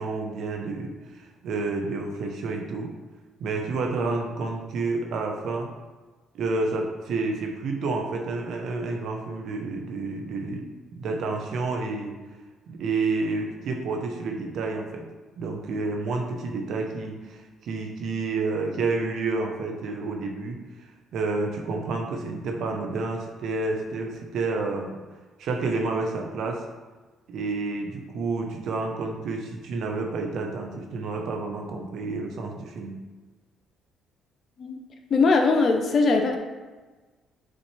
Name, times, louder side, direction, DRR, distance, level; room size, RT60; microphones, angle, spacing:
voice 1, 0.0-2.9 3.4-5.7 6.3-10.6 11.0-12.2 12.7-15.1 15.4-25.0 25.4-26.7 27.3-33.0, right 3 dB, 70° right, 2 dB, 1.1 m, -29 dB
voice 2, 35.1-36.4, left 3 dB, 50° left, 3 dB, 1.1 m, -20 dB
7.6 x 4.1 x 3.4 m, 1.3 s
supercardioid pair, 75°, 0 cm